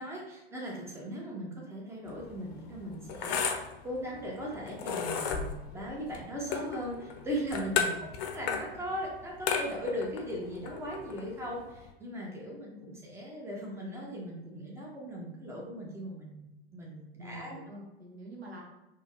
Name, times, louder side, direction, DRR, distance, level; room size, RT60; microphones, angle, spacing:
voice 1, 0.0-7.7 8.3-17.6, equal, 10° right, -3 dB, 1.0 m, -39 dB
sound 1, 2.1-11.9, left 6 dB, 40° left, 0.6 m, -35 dB
voice 2, 7.6-8.0 17.1-18.6, equal, 80° right, -2 dB, 1.0 m, -44 dB
4.2 x 2.9 x 3.1 m, 0.97 s
figure-of-eight pair, 85°, 31 cm